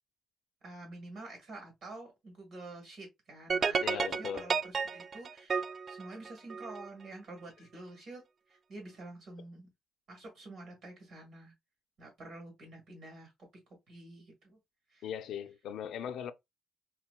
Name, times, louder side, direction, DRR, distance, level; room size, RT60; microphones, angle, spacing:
voice 1, 0.6-8.2 8.5-9.7 10.1-11.5 12.0-13.3 13.9-14.6 14.9-15.1, right 2 dB, 70° right, 1.7 m, -48 dB
sound 1, 3.5-6.9, right 5 dB, 45° right, 0.3 m, -32 dB
voice 2, 3.8-4.5 15.0-16.3, left 8 dB, 75° left, 0.4 m, -39 dB
3.9 x 2.9 x 2.2 m
cardioid pair, 90°, 0 cm